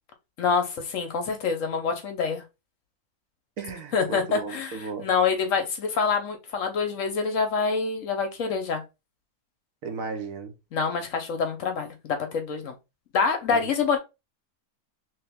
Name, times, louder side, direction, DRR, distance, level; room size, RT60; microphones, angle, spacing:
voice 1, 0.4-2.4 3.9-8.8 10.7-12.7 13.1-14.0, left 5 dB, 65° left, 1.0 m, -26 dB
voice 2, 3.6-5.1 9.8-10.5 13.5-13.7, right 5 dB, 65° right, 1.1 m, -35 dB
3.2 x 2.9 x 3.4 m
omnidirectional pair, 1.6 m